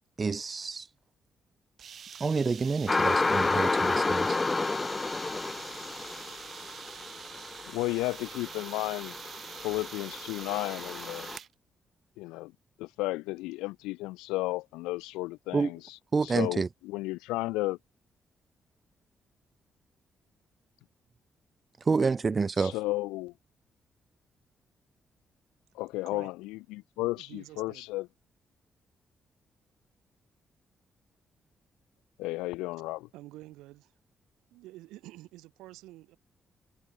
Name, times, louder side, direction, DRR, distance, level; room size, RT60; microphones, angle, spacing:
voice 1, 0.2-0.9 2.2-4.4 15.5-15.7 16.1-16.7 21.9-22.7, right 4 dB, 40° right, 0.8 m, -28 dB
sound 1, 1.8-11.5, right 8 dB, 65° right, 1.0 m, -46 dB
sound 2, 2.9-11.4, left 3 dB, 30° left, 0.6 m, -31 dB
voice 2, 7.7-9.1 9.6-11.3 12.2-12.5 12.8-15.8 16.2-17.8 22.6-23.3 25.8-28.1 32.2-33.1, left 20 dB, 90° left, 0.6 m, -33 dB
voice 3, 27.1-27.9 33.1-33.9 34.5-36.2, right 17 dB, 85° right, 2.1 m, -48 dB
supercardioid pair, 50°, 0 cm